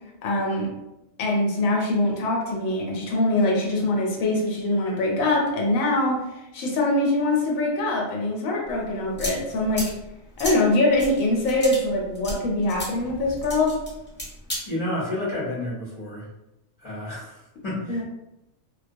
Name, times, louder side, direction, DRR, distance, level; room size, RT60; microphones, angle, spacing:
voice 1, 0.2-0.7 1.2-6.2 6.5-9.9 10.4-13.8 17.9-18.0, left 2 dB, 90° left, -2 dB, 1.1 m, -23 dB
sound 1, 8.7-14.6, equal, 10° left, 0.7 m, -35 dB
voice 2, 14.6-16.3 16.8-18.0, left 1 dB, 40° left, -9 dB, 0.7 m, -30 dB
2.2 x 2.2 x 2.5 m, 0.91 s
omnidirectional pair, 1.4 m